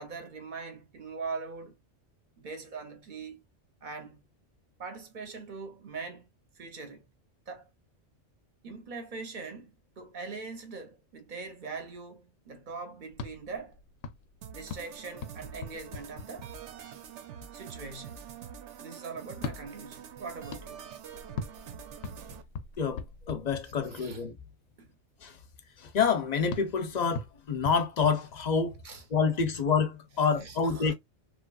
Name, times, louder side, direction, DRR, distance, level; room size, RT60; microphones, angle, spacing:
voice 1, 0.0-1.7 2.4-3.4 3.8-4.3 4.8-6.3 6.6-7.1 7.5-7.7 8.6-13.8 14.5-16.5 17.5-18.3 18.8-20.9 23.8-24.2 24.8-25.0 28.8-29.0 30.3-30.9, right 4 dB, 50° right, 0.8 m, -42 dB
sound 1, 13.1-16.9 19.3-24.2 26.5-28.9, left 4 dB, 85° left, 0.9 m, -42 dB
sound 2, 14.4-22.4, right 8 dB, 85° right, 1.0 m, -46 dB
voice 2, 22.8-24.4 25.2-25.4 25.8-28.8 29.1-30.9, left 6 dB, 50° left, 0.6 m, -28 dB
3.0 x 2.4 x 2.2 m
omnidirectional pair, 1.2 m